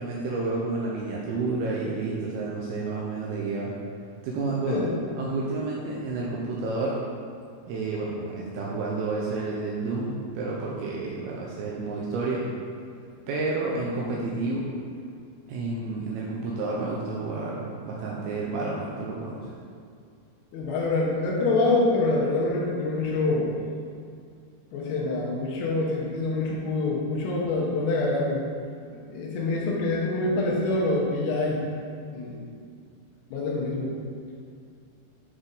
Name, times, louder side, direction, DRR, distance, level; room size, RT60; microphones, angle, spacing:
voice 1, 0.0-3.7 4.2-4.8 5.2-7.0 7.7-12.5 13.3-14.7 15.5-19.5 28.9-29.0, right 3 dB, 80° right, -4 dB, 2.4 m, -30 dB
voice 2, 20.5-23.5 24.7-28.4 29.1-31.6 32.1-32.4 33.3-33.9, left 2 dB, 85° left, -4 dB, 3.0 m, -25 dB
8.0 x 4.0 x 3.8 m, 2.3 s
omnidirectional pair, 4.7 m